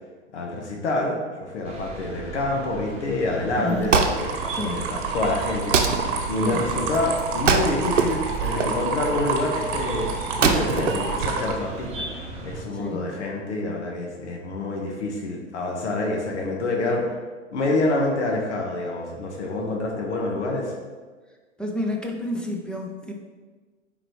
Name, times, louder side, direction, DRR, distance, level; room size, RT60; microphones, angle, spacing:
voice 1, 0.3-6.0 6.3-17.1 17.5-20.7, left 2 dB, 65° left, 0 dB, 1.3 m, -27 dB
sound 1, 1.6-12.6, right 3 dB, 15° right, 1.2 m, -37 dB
Wood, 3.5-11.8, right 5 dB, 75° right, 0.8 m, -26 dB
voice 2, 3.6-3.9 4.5-4.9 6.4-6.6 12.8-13.1 21.6-23.1, left 1 dB, ahead, 0 dB, 0.6 m, -30 dB
sound 2, 4.2-11.5, right 4 dB, 40° right, 1.1 m, -29 dB
8.9 x 4.2 x 3.0 m, 1.4 s
figure-of-eight pair, 105°, 37 cm